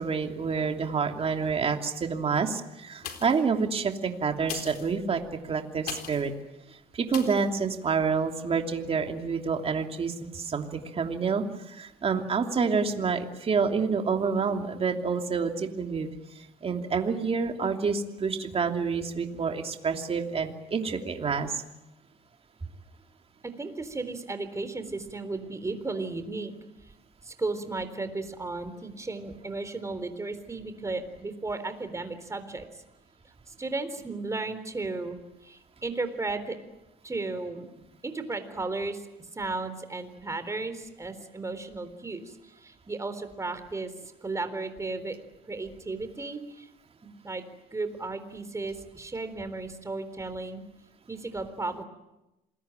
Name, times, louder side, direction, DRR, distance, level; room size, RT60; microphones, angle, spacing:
voice 1, 0.0-6.3 6.9-16.1 16.4-21.6, right 5 dB, 35° right, 4 dB, 2.9 m, -28 dB
sound 1, 3.0-3.5 4.4-6.3 7.1-7.5 8.0-8.1, left 8 dB, 65° left, 4.0 m, -40 dB
voice 2, 23.4-26.5 27.2-32.8 33.5-36.6 37.0-39.0 39.3-43.9 44.2-45.2 45.4-46.7 47.0-47.4 47.7-50.6 51.1-51.8, right 3 dB, 15° right, 10 dB, 3.8 m, -34 dB
27.5 x 21.0 x 9.1 m, 0.96 s
cardioid pair, 110°, 17 cm